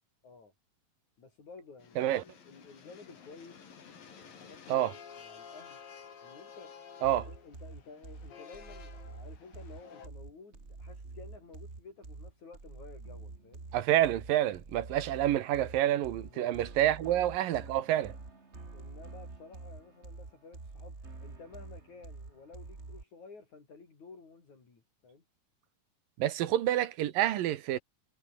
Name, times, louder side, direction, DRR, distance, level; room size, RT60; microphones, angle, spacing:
voice 1, 1.2-3.6 3.9-5.8 6.2-6.7 7.2-13.6 16.2-16.5 17.0-17.3 18.6-25.2 26.5-26.6, left 4 dB, 55° left, 6.5 m, -53 dB
sound 1, 1.8-10.1, left 6 dB, 75° left, 5.4 m, -52 dB
sound 2, 7.0-23.0, right 3 dB, 20° right, 2.5 m, -47 dB
voice 2, 13.7-18.1 26.2-27.8, right 12 dB, 80° right, 2.9 m, -28 dB
omnidirectional pair, 4.0 m